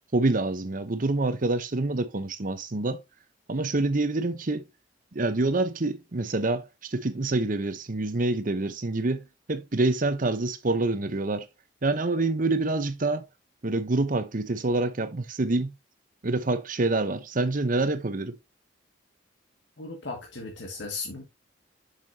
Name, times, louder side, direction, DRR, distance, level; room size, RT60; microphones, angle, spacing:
voice 1, 0.1-3.0 3.5-4.7 5.1-11.5 11.8-13.3 13.6-15.7 16.2-18.4, right 2 dB, 45° right, 0.9 m, -26 dB
voice 2, 19.8-21.2, left 3 dB, 75° left, 1.9 m, -36 dB
6.9 x 6.6 x 2.8 m
head